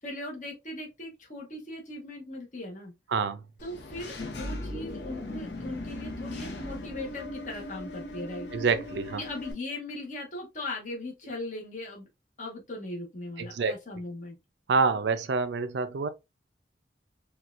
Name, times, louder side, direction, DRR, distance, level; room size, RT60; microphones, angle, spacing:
voice 1, 0.0-2.9 3.6-8.5 9.2-12.1 12.4-14.4, left 2 dB, 45° left, 1.1 m, -39 dB
voice 2, 3.1-3.4 8.5-9.2 13.4-13.7 14.7-16.1, right 4 dB, 75° right, 0.4 m, -27 dB
Engine / Mechanisms, 3.6-9.5, left 1 dB, 70° left, 0.8 m, -38 dB
4.2 x 2.3 x 2.4 m
head